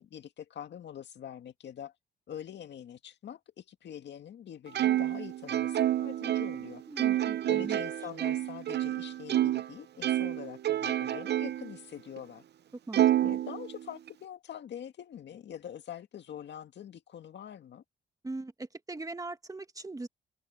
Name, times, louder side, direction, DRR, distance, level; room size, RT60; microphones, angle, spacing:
voice 1, 0.0-1.9 2.3-6.8 7.5-12.4 13.2-17.8, left 9 dB, 60° left, 2.0 m, -44 dB
Plucked string instrument, 4.7-9.7 10.0-11.7 12.2-12.3 12.9-14.1, right 12 dB, 55° right, 0.8 m, -29 dB
voice 2, 6.9-7.8 12.9-13.3 18.2-20.1, right 2 dB, 15° right, 1.5 m, -40 dB
open air
cardioid pair, 90°, 20 cm